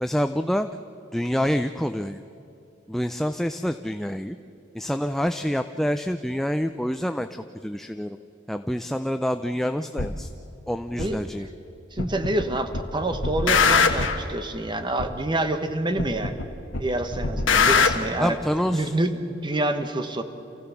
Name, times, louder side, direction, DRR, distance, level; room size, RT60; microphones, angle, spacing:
voice 1, 0.0-0.7 1.1-2.2 2.9-4.4 4.7-8.2 8.5-10.3 10.7-11.5 18.2-19.0, equal, ahead, 8 dB, 0.4 m, -27 dB
sound 1, 10.0-10.1 11.0-11.1 12.0-12.5 12.7-14.2 15.0-15.1 16.0-16.5 16.7-18.0, left 5 dB, 80° left, 1.4 m, -21 dB
voice 2, 11.9-16.4 16.8-18.4 18.7-20.2, right 1 dB, 25° right, 8 dB, 1.2 m, -27 dB
28.0 x 15.5 x 7.0 m, 2.8 s
head